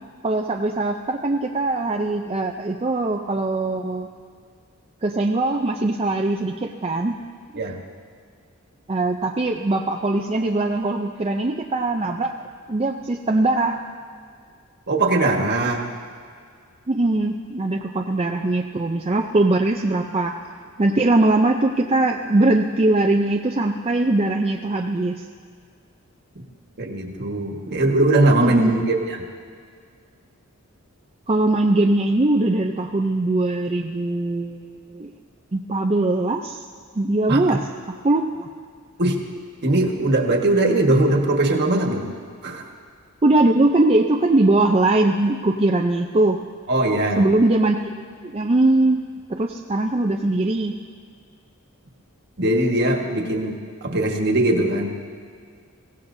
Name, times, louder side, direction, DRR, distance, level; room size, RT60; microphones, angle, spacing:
voice 1, 0.2-4.1 5.0-7.2 8.9-13.8 16.9-20.3 20.8-25.2 28.4-28.7 31.3-35.1 35.5-36.6 36.9-38.5 43.2-46.4 47.2-49.0 49.3-50.7, right 2 dB, 30° right, 1 dB, 0.5 m, -21 dB
voice 2, 14.9-15.8 26.8-29.2 37.3-37.6 39.0-39.2 39.6-42.1 42.4-42.6 46.7-47.3 52.4-53.6 53.8-54.9, right 2 dB, 50° right, 2 dB, 1.5 m, -20 dB
23.0 x 16.5 x 2.7 m, 2.1 s
head